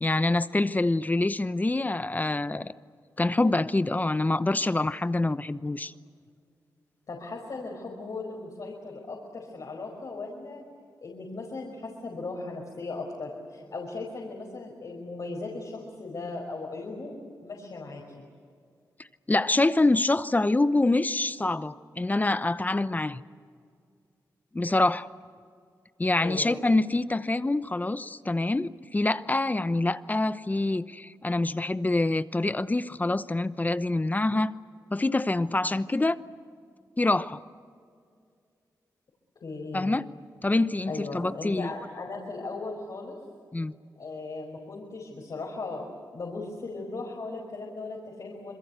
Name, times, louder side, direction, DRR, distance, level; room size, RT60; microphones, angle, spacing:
voice 1, 0.0-2.7 3.2-5.9 19.3-23.2 24.5-25.1 26.0-34.5 34.9-36.2 37.0-37.4 39.7-40.0 40.4-41.7 43.5-43.7, left 2 dB, 25° left, 14 dB, 0.9 m, -26 dB
voice 2, 7.1-10.6 11.0-18.3 26.2-26.5 39.4-40.0 40.9-43.2 44.0-45.8 46.1-48.5, left 3 dB, 60° left, -1 dB, 5.3 m, -37 dB
27.5 x 22.5 x 8.2 m, 2.2 s
cardioid pair, 65°, 7 cm